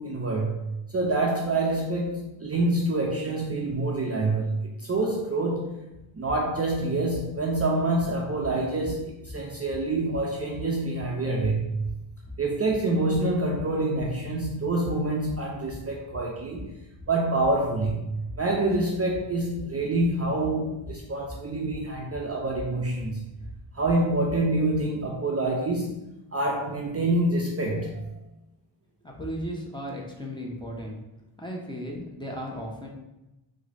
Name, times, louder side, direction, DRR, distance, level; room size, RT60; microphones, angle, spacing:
voice 1, 0.0-5.9 6.2-11.9 12.4-16.8 17.1-23.3 23.7-25.9 26.3-28.0, right 2 dB, 30° right, -2 dB, 0.4 m, -27 dB
sound 1, 5.9-24.7, left 1 dB, 25° left, 1.0 m, -44 dB
voice 2, 29.0-31.0 31.4-32.9, equal, 10° left, -2 dB, 0.6 m, -35 dB
3.5 x 2.0 x 3.2 m, 0.95 s
cardioid pair, 80°, 49 cm